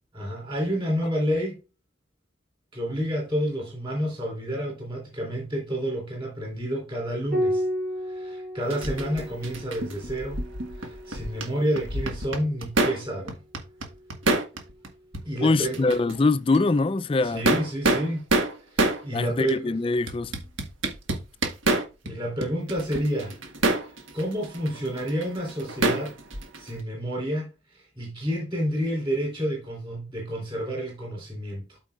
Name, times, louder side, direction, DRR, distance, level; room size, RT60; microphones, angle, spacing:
voice 1, 0.1-1.6 2.7-7.7 8.0-10.4 10.7-13.4 15.2-15.9 17.2-18.2 18.7-19.7 22.0-23.4 23.8-26.2 26.6-31.8, equal, 25° right, 3.5 m, -29 dB
Piano, 7.3-12.2 13.8-14.6, equal, 45° right, 3.2 m, -33 dB
sound 1, 8.7-11.5 11.8-13.0 13.3-14.9 15.1-15.2 15.6-16.2 16.5-16.6 17.2-19.0 19.5-19.6 20.1-22.1 22.4-26.8, right 2 dB, 85° right, 1.5 m, -27 dB
voice 2, 15.4-17.4 19.1-20.3, left 3 dB, 25° left, 0.3 m, -23 dB
13.0 x 4.6 x 2.4 m
head